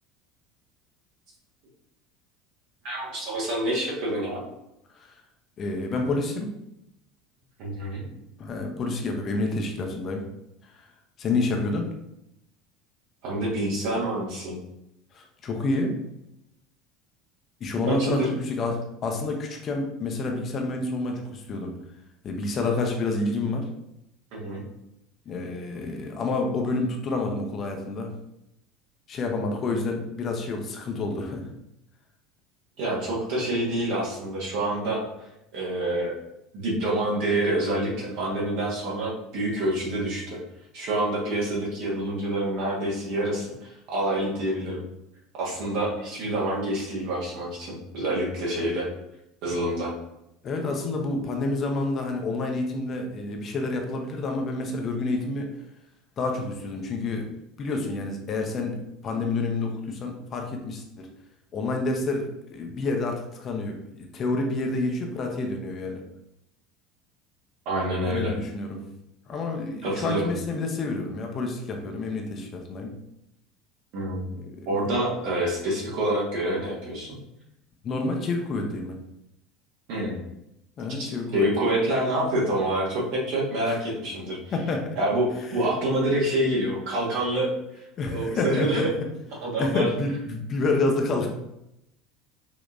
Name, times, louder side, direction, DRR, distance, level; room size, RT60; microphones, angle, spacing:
voice 1, 2.8-4.4 7.6-8.0 13.2-14.6 17.9-18.3 24.3-24.6 32.8-35.0 35.5-36.1 36.5-40.4 40.7-44.8 45.4-48.9 49.4-49.9 67.6-68.3 69.8-70.3 73.9-74.2 74.6-77.2 79.9-80.2 81.0-84.4 84.9-87.5 88.1-88.9 89.4-89.9, right 1 dB, 55° right, -4 dB, 1.5 m, -27 dB
voice 2, 5.6-6.5 8.4-10.2 10.6-10.8 11.2-11.9 15.1-15.9 17.6-21.7 22.2-23.7 25.3-28.1 29.1-31.4 50.4-55.5 56.2-57.3 57.6-58.8 59.0-61.1 61.5-66.0 68.0-68.8 69.3-72.9 74.3-74.6 77.8-79.0 80.8-81.5 83.7-83.8 84.5-85.0 88.0-88.9 89.6-91.3, left 3 dB, 35° left, 2 dB, 0.7 m, -28 dB
5.3 x 2.9 x 2.5 m, 0.83 s
figure-of-eight pair, 70°, 0 cm